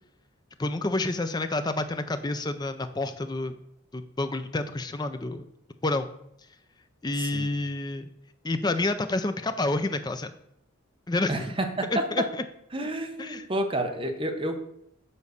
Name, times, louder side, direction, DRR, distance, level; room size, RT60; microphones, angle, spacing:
voice 1, 0.6-3.6 3.9-5.5 5.8-6.1 7.0-8.1 8.4-10.3 11.1-11.4 11.9-12.2 13.2-13.4, left 2 dB, 20° left, 9 dB, 0.4 m, -29 dB
voice 2, 7.2-7.5 11.3-11.7 11.9-12.3 12.7-14.6, right 1 dB, 25° right, 4 dB, 0.9 m, -29 dB
7.2 x 4.0 x 6.6 m, 0.75 s
head